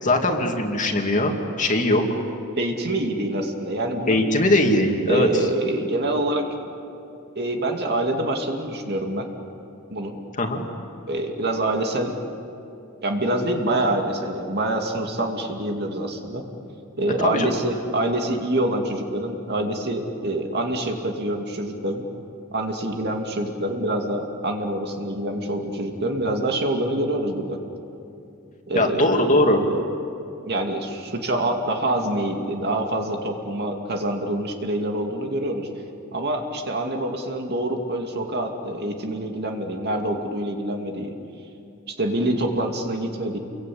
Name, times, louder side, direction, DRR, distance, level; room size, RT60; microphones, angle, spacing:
voice 1, 0.0-2.0 4.1-5.3 10.4-10.6 17.2-17.5 28.7-29.6, left 1 dB, 35° left, 3 dB, 2.5 m, -20 dB
voice 2, 2.5-4.3 5.1-6.5 7.4-9.3 9.9-10.2 11.1-12.2 13.0-16.5 17.0-22.1 22.5-27.6 28.7-29.8 30.5-35.7 36.1-41.1 41.9-43.4, right 1 dB, 50° right, 3 dB, 2.5 m, -26 dB
29.5 x 23.0 x 8.6 m, 2.7 s
head